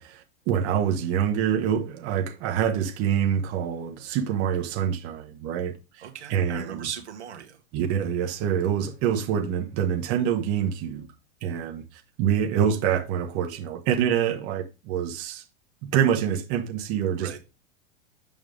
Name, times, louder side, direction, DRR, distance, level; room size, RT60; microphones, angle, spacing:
voice 1, 0.0-6.0 6.3-6.9 7.7-11.1 11.4-11.8 12.2-15.4 15.8-17.4, right 9 dB, 45° right, 1.4 m, -26 dB
voice 2, 6.0-7.6 17.2-17.4, right 9 dB, 85° right, 1.8 m, -37 dB
7.4 x 5.2 x 3.7 m
hypercardioid pair, 110°, 33 cm